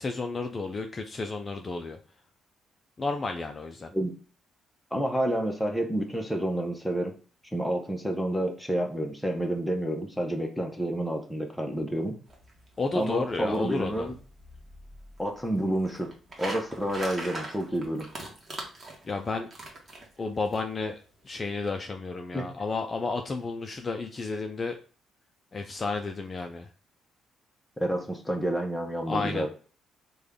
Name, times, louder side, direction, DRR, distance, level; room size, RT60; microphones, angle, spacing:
voice 1, 0.0-2.0 3.0-3.9 12.8-14.1 19.0-19.5 20.2-21.0 21.2-24.8 25.5-26.7 29.1-29.5, left 3 dB, 35° left, 5 dB, 0.3 m, -32 dB
voice 2, 4.9-7.1 7.5-12.2 12.9-14.1 15.2-16.1 16.4-18.1 22.3-22.5 27.8-29.5, right 1 dB, 5° left, 2 dB, 0.7 m, -29 dB
sound 1, 12.3-20.6, right 2 dB, 35° right, 1.0 m, -42 dB
3.3 x 2.2 x 3.5 m, 0.39 s
cardioid pair, 90°, 0 cm